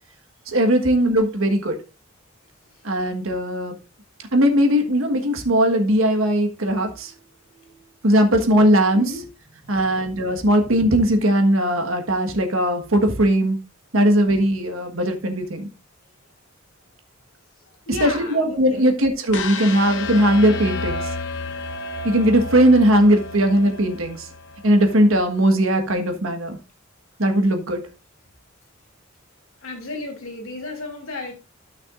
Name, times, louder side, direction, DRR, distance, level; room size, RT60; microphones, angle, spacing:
voice 1, 0.5-1.8 2.8-3.8 4.3-7.1 8.0-9.0 9.7-13.6 13.9-15.7 18.0-21.0 22.0-24.2 24.6-26.6 27.2-27.8, right 1 dB, 80° right, 1.4 m, -19 dB
voice 2, 6.9-7.2 7.5-7.9 8.9-9.3 9.6-10.1 17.9-19.0 29.6-31.3, left 2 dB, 85° left, 2.7 m, -35 dB
sound 1, 19.3-25.4, left 3 dB, 60° left, 0.8 m, -31 dB
14.0 x 6.1 x 2.5 m
head